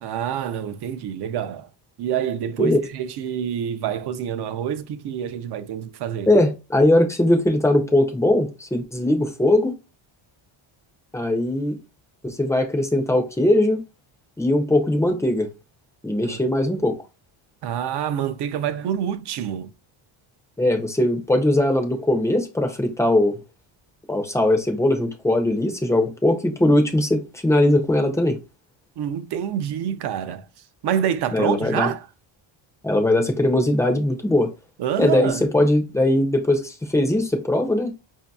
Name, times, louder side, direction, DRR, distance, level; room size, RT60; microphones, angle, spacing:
voice 1, 0.0-1.7 2.0-6.3 16.2-16.4 17.6-19.7 29.0-30.5 30.8-32.1 34.8-35.4, right 9 dB, 55° right, 0.5 m, -27 dB
voice 2, 6.3-9.7 11.1-11.8 12.2-13.8 14.4-15.5 16.0-17.0 20.6-23.4 24.1-28.4 31.3-31.9 32.8-34.5 35.0-37.9, left 1 dB, 5° left, 0.4 m, -20 dB
5.2 x 2.7 x 2.2 m
cardioid pair, 150°, 49 cm